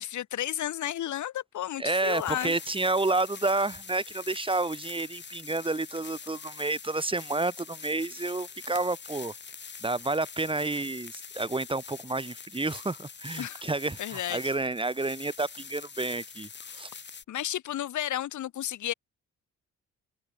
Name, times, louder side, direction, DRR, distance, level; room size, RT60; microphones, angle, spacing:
voice 1, 0.0-2.5 13.4-13.6 14.0-14.4 17.3-18.9, left 12 dB, 75° left, 3.3 m, -32 dB
voice 2, 1.8-9.3 9.8-16.9, right 2 dB, 15° right, 2.6 m, -30 dB
sound 1, 1.9-17.2, left 6 dB, 35° left, 2.3 m, -44 dB
cardioid pair, 90°, 30 cm